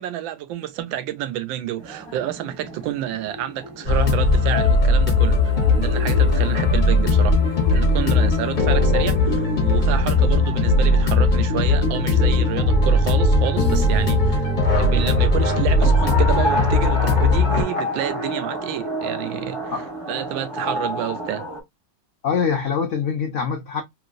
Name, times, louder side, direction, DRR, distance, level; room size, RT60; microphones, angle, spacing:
voice 1, 0.0-14.4 14.8-19.8 20.1-21.5, right 12 dB, 85° right, 1.3 m, -29 dB
sound 1, 1.8-21.6, equal, 15° right, 1.0 m, -31 dB
sound 2, 3.9-17.6, left 2 dB, 40° left, 0.7 m, -18 dB
voice 2, 22.2-23.8, left 6 dB, 85° left, 0.6 m, -24 dB
3.0 x 3.0 x 2.3 m
omnidirectional pair, 2.1 m